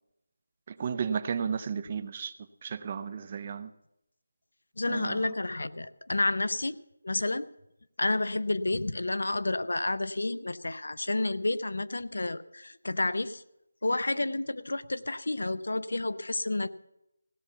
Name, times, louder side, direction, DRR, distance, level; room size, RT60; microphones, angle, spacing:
voice 1, 0.8-2.3 2.6-3.7 4.9-5.3, right 6 dB, 25° right, 12 dB, 0.5 m, -33 dB
voice 2, 4.8-6.8 7.0-7.4 8.0-13.4 13.8-16.7, left 2 dB, 80° left, 14 dB, 0.6 m, -30 dB
16.5 x 7.0 x 6.8 m, 0.85 s
figure-of-eight pair, 175°, 0 cm